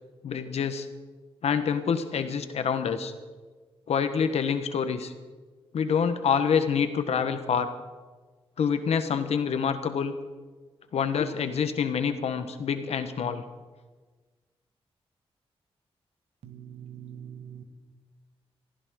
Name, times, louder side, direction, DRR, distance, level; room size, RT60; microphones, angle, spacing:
voice 1, 0.2-0.9 1.4-3.1 3.9-5.1 5.7-7.7 8.6-10.1 10.9-13.4, left 7 dB, 80° left, 9 dB, 1.2 m, -26 dB
voice 2, 16.4-17.6, right 9 dB, 80° right, 7 dB, 1.6 m, -43 dB
22.0 x 15.0 x 3.8 m, 1.4 s
wide cardioid pair, 135°, 11 cm